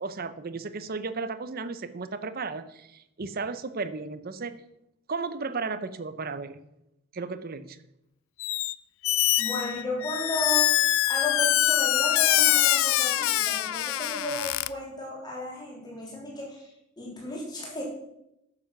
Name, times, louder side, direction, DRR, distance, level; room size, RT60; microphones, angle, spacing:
voice 1, 0.0-4.6 5.1-6.6 7.1-7.8, right 4 dB, 45° right, 12 dB, 0.7 m, -34 dB
Squeak, 8.4-8.7 9.0-14.7, left 14 dB, 65° left, 0.4 m, -24 dB
voice 2, 9.4-10.7 11.1-17.8, left 1 dB, 20° left, -3 dB, 3.2 m, -34 dB
10.0 x 6.9 x 5.9 m, 0.84 s
head